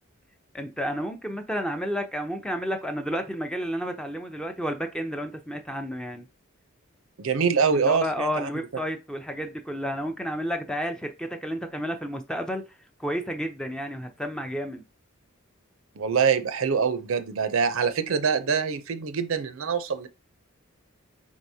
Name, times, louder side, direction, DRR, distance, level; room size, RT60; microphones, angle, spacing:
voice 1, 0.5-6.2 7.7-12.6 13.0-14.8, equal, 5° left, 0.5 m, -31 dB
voice 2, 7.2-8.5 16.0-20.1, right 6 dB, 75° right, 0.6 m, -24 dB
4.6 x 4.1 x 2.7 m
head